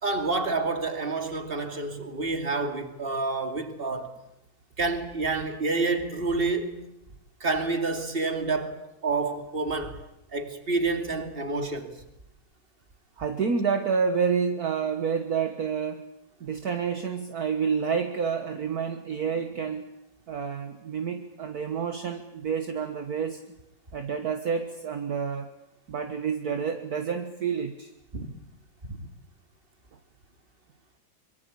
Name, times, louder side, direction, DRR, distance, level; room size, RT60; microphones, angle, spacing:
voice 1, 0.0-4.1 4.8-6.9 7.4-10.0 10.3-11.9 28.1-28.3 28.9-29.1, right 3 dB, 30° right, 2.7 m, -28 dB
voice 2, 13.2-16.0 16.4-19.9 20.3-23.4 23.9-25.5 25.9-27.9, right 6 dB, 55° right, 1.8 m, -29 dB
24.5 x 23.0 x 8.5 m
omnidirectional pair, 2.0 m